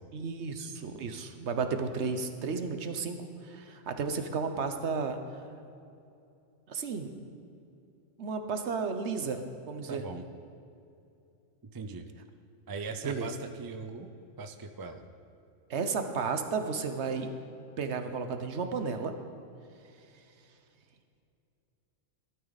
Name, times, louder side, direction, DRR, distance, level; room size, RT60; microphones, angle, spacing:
voice 1, 0.1-3.2 3.4-5.2 6.7-7.1 8.2-9.4 9.7-10.0 13.0-13.3 15.7-17.3 17.8-19.1, right 5 dB, 70° right, 7 dB, 1.2 m, -33 dB
voice 2, 9.9-10.3 11.6-12.1 12.7-14.1 14.4-15.0, right 4 dB, 30° right, 7 dB, 0.4 m, -40 dB
16.0 x 12.5 x 4.1 m, 2.6 s
omnidirectional pair, 1.2 m